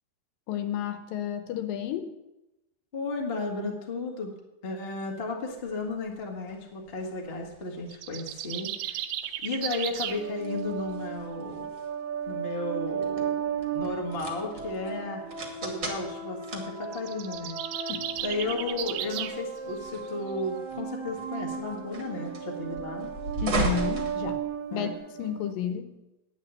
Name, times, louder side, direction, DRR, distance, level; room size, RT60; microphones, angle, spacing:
voice 1, 0.5-2.1 17.9-18.1 23.4-24.5 24.7-24.9 25.2-26.0, left 9 dB, 75° left, 9 dB, 2.4 m, -31 dB
voice 2, 2.9-4.3 4.6-9.0 9.4-11.7 12.3-15.2 15.6-17.9 18.2-23.1 24.7-24.9, left 3 dB, 35° left, 0 dB, 0.8 m, -34 dB
sound 1, 5.6-25.0, right 3 dB, 40° right, 1.6 m, -39 dB
sound 2, 7.9-10.2 16.8-19.4, right 12 dB, 80° right, 2.2 m, -35 dB
sound 3, 10.1-25.5, right 7 dB, 65° right, 1.3 m, -36 dB
9.8 x 8.4 x 7.5 m, 0.97 s
omnidirectional pair, 4.2 m